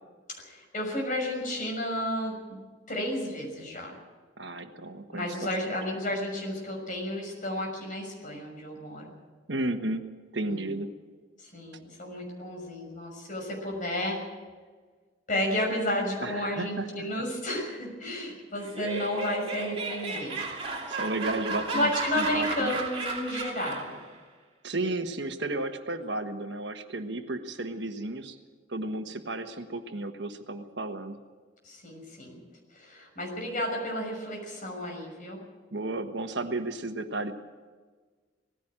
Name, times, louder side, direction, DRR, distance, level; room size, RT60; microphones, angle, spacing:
voice 1, 0.3-2.6 2.9-3.9 5.1-9.0 10.5-10.7 11.4-14.2 15.3-20.4 21.7-24.0 31.6-32.4 32.7-35.4, left 1 dB, 45° left, 1 dB, 6.2 m, -32 dB
voice 2, 4.4-5.8 9.5-10.0 10.3-10.9 16.2-17.1 20.9-21.9 22.2-22.8 24.6-28.4 28.7-31.2 35.7-37.3, right 2 dB, 70° right, 7 dB, 1.4 m, -33 dB
Laughter, 18.6-24.0, right 3 dB, 30° right, 3.0 m, -34 dB
19.0 x 15.5 x 8.9 m, 1.5 s
head